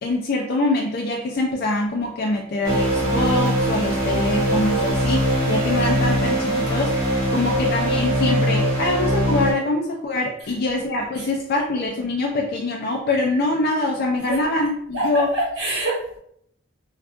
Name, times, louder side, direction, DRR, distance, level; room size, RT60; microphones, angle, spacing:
voice 1, 0.0-15.3, left 2 dB, 55° left, -1 dB, 0.4 m, -24 dB
sound 1, 2.6-9.5, equal, 55° right, 1.2 m, -21 dB
voice 2, 14.9-16.2, right 1 dB, 70° right, -5 dB, 1.5 m, -25 dB
3.5 x 2.3 x 2.4 m, 0.70 s
head